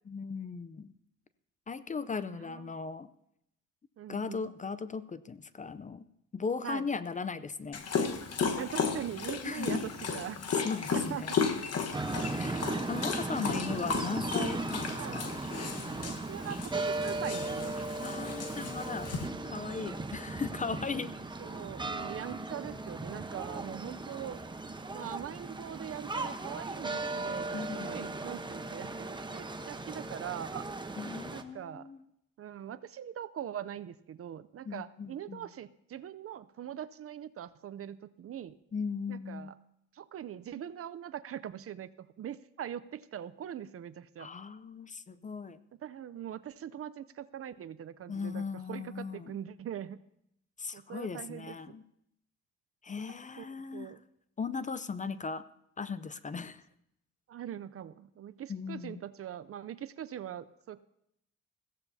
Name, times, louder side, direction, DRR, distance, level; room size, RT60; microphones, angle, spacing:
voice 1, 0.1-0.9 1.7-3.1 4.1-6.1 6.3-7.8 9.4-9.8 10.5-11.3 12.3-15.3 18.0-19.1 19.4-21.1 27.5-28.1 31.0-32.0 34.7-35.5 38.7-39.5 44.2-45.6 48.1-49.4 50.6-51.8 52.8-53.9 54.4-55.4 55.8-56.6 58.5-59.0, left 5 dB, 25° left, 15 dB, 0.5 m, -38 dB
voice 2, 2.2-2.8 4.0-4.5 6.6-6.8 8.6-10.4 10.9-11.4 13.7-13.8 14.9-15.2 16.0-17.7 21.4-24.4 24.9-30.7 31.3-31.9 32.4-38.6 39.1-39.5 39.9-44.3 45.8-50.0 50.7-51.6 53.4-54.0 57.3-60.8, right 10 dB, 50° right, 14 dB, 0.6 m, -42 dB
Dog, 7.7-19.3, left 5 dB, 55° left, 1.3 m, -35 dB
sound 1, 11.9-31.4, right 2 dB, 15° right, 0.9 m, -37 dB
21.0 x 15.5 x 2.7 m, 0.77 s
cardioid pair, 90°, 30 cm